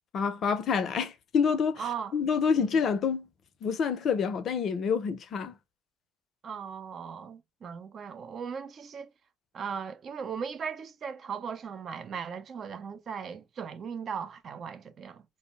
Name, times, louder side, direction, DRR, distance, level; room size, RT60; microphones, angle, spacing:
voice 1, 0.1-1.8 2.1-3.3 3.6-5.5, left 6 dB, 45° left, 0.5 m, -27 dB
voice 2, 1.8-2.2 2.5-2.7 6.4-9.1 9.5-15.2, right 6 dB, 40° right, 0.4 m, -38 dB
2.2 x 2.0 x 3.0 m
figure-of-eight pair, 60°, 0 cm